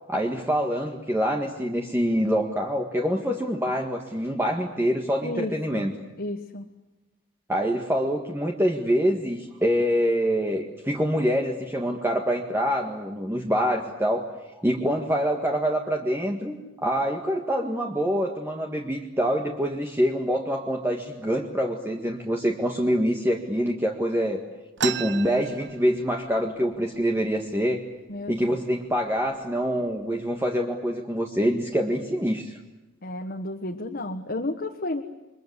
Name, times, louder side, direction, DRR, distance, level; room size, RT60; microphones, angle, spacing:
voice 1, 0.1-5.9 7.5-14.3 14.6-24.4 24.8-27.8 28.3-32.6, equal, 10° right, 1 dB, 1.8 m, -25 dB
voice 2, 5.2-6.7 28.1-28.4 33.0-35.0, left 2 dB, 50° left, 3 dB, 1.6 m, -32 dB
sound 1, 24.8-26.4 26.7-26.8 27.1-27.7 28.3-28.5 29.2-29.3 29.8-30.3, right 8 dB, 60° right, 1.0 m, -33 dB
29.0 x 23.5 x 8.3 m, 1.0 s
head